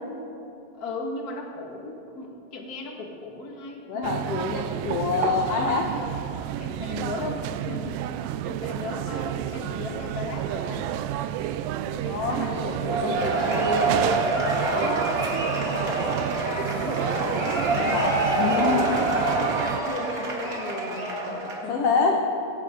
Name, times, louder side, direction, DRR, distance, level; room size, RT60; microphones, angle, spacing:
voice 1, 0.7-4.2 6.6-8.0 8.4-11.0 14.6-15.2 15.5-17.9 18.5-18.9 19.3-22.0, left 3 dB, 35° left, 0 dB, 1.7 m, -36 dB
voice 2, 3.9-5.9 11.9-13.9 17.7-19.0 21.7-22.2, left 4 dB, 65° left, 1 dB, 1.6 m, -27 dB
sound 1, 4.0-19.8, right 11 dB, 85° right, 2.3 m, -30 dB
Cheering / Applause / Crowd, 12.8-21.7, right 2 dB, 35° right, 1.8 m, -26 dB
19.5 x 17.0 x 3.9 m, 2.8 s
omnidirectional pair, 4.0 m